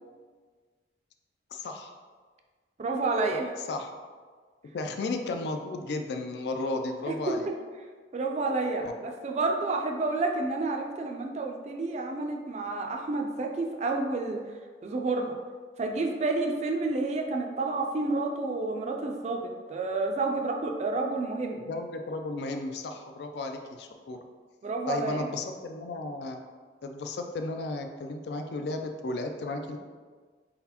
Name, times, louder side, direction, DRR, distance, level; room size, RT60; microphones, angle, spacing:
voice 1, 1.5-2.0 3.7-3.9 4.6-7.5 8.8-9.0 21.6-24.2 24.9-26.4 26.8-29.8, left 2 dB, 65° left, 5 dB, 0.4 m, -34 dB
voice 2, 2.8-3.5 7.1-7.4 8.1-14.4 14.8-15.3 15.8-21.6 24.6-25.3, right 3 dB, 40° right, 2 dB, 0.3 m, -30 dB
4.2 x 4.0 x 2.8 m, 1.5 s
head